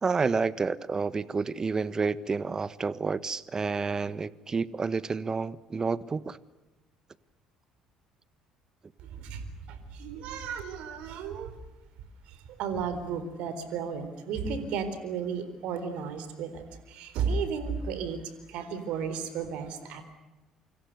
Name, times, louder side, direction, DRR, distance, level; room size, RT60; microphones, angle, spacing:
voice 1, 0.0-6.4, right 4 dB, 30° right, 17 dB, 1.4 m, -29 dB
voice 2, 10.0-11.5 12.6-16.6 17.0-18.2 18.5-20.1, right 6 dB, 65° right, 11 dB, 4.0 m, -33 dB
28.5 x 26.0 x 6.8 m, 1.1 s
hypercardioid pair, 55°, 2 cm